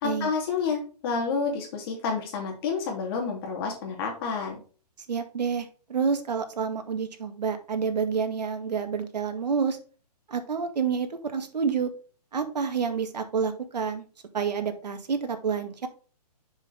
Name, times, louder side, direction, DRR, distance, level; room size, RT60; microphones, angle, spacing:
voice 1, 0.0-4.6, left 5 dB, 35° left, 1 dB, 2.8 m, -29 dB
voice 2, 5.1-9.8 10.3-11.9 12.3-14.0 14.3-15.9, right 6 dB, 80° right, 7 dB, 1.9 m, -28 dB
7.2 x 6.1 x 3.5 m, 0.38 s
hypercardioid pair, 155°, 21 cm